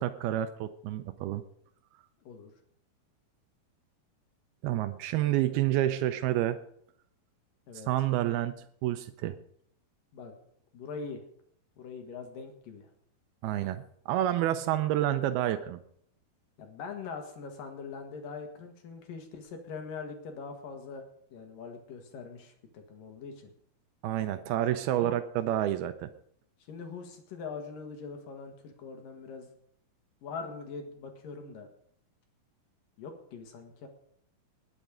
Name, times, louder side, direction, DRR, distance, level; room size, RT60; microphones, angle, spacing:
voice 1, 0.0-1.4 4.6-6.6 7.9-9.4 13.4-15.8 24.0-26.1, right 13 dB, 85° right, 10 dB, 2.6 m, -29 dB
voice 2, 2.2-2.5 7.7-7.9 10.1-10.3 10.7-11.2 11.8-12.9 16.6-21.0 21.3-23.5 25.0-25.2 26.7-29.5 30.2-31.7 33.0-33.9, left 5 dB, 65° left, 4 dB, 3.0 m, -42 dB
20.0 x 7.3 x 5.1 m, 0.65 s
omnidirectional pair, 4.4 m